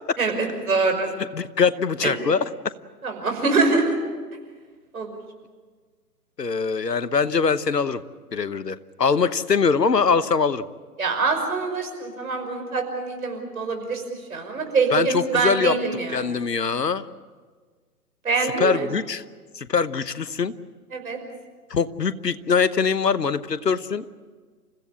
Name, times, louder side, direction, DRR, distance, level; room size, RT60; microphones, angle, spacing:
voice 1, 0.2-1.1 2.0-2.1 3.0-4.0 4.9-5.2 11.0-14.0 14.3-16.4 18.2-18.9 20.9-21.2, right 4 dB, 60° right, 4 dB, 5.8 m, -24 dB
voice 2, 1.3-2.4 6.4-8.0 8.3-10.7 14.9-15.8 16.1-17.0 18.6-19.2 19.5-20.5 21.7-24.0, left 5 dB, 80° left, 16 dB, 1.1 m, -22 dB
29.0 x 16.0 x 8.5 m, 1.5 s
figure-of-eight pair, 140°, 48 cm